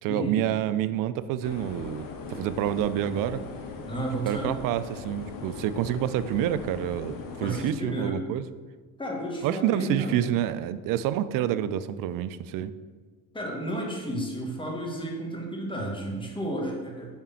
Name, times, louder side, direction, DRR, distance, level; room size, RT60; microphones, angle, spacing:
voice 1, 0.0-2.0 2.3-3.4 4.3-8.5 9.4-12.7, right 11 dB, 50° right, 13 dB, 0.5 m, -28 dB
sound 1, 1.4-7.7, left 4 dB, 50° left, 1.0 m, -39 dB
voice 2, 3.9-4.5 7.4-8.2 9.0-10.2 13.3-17.2, right 1 dB, 10° left, -1 dB, 1.6 m, -32 dB
5.2 x 3.6 x 5.6 m, 1.5 s
hypercardioid pair, 70°, 44 cm